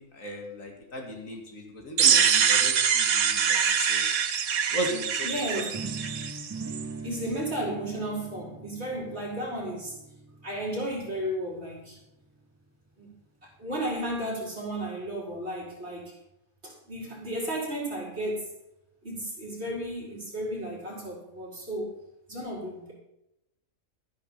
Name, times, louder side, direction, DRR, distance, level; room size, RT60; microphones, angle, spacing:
voice 1, 0.0-4.0 4.7-5.7, equal, 70° left, 2 dB, 2.7 m, -36 dB
sound 1, 2.0-6.8, right 7 dB, 85° right, 1.5 m, -24 dB
voice 2, 5.2-5.7 7.0-9.9 10.4-12.0 13.0-13.1 13.6-16.1 16.6-18.5 19.0-21.9 22.3-22.9, right 1 dB, 50° right, -5 dB, 5.4 m, -33 dB
sound 2, 5.7-11.6, right 3 dB, 25° right, 0.4 m, -41 dB
13.0 x 10.5 x 5.7 m, 0.84 s
omnidirectional pair, 1.4 m